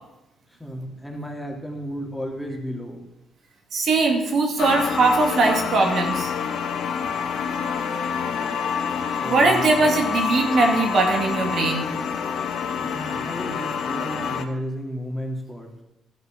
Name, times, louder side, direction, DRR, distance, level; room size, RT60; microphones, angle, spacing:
voice 1, 0.5-3.0 9.2-9.9 12.8-15.7, equal, 5° left, 0 dB, 2.8 m, -33 dB
voice 2, 3.7-6.3 9.2-11.9, right 3 dB, 60° right, 2 dB, 2.2 m, -20 dB
sound 1, 4.6-14.5, left 6 dB, 70° left, 1.0 m, -27 dB
13.5 x 6.7 x 6.1 m, 0.88 s
cardioid pair, 90°, 0 cm